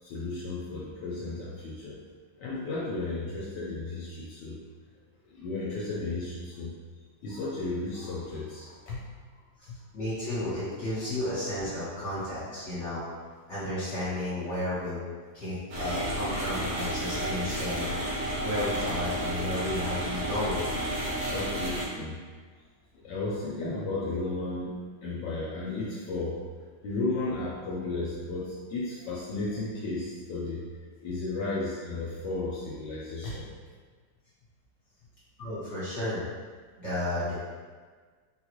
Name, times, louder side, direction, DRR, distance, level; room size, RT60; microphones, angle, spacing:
voice 1, 0.0-2.0 2.4-4.6 5.3-6.7 7.2-9.0 9.7-9.8 21.3-22.2 23.0-26.4 26.8-30.6 31.0-33.5, left 2 dB, 75° left, -6 dB, 1.1 m, -34 dB
voice 2, 9.6-13.0 13.5-15.0 15.3-20.7 35.4-36.2 36.8-37.4, left 1 dB, 45° left, -11 dB, 1.3 m, -33 dB
sound 1, 15.7-21.9, right 1 dB, 65° right, 1.0 m, -31 dB
3.7 x 2.3 x 2.9 m, 1.5 s
omnidirectional pair, 2.0 m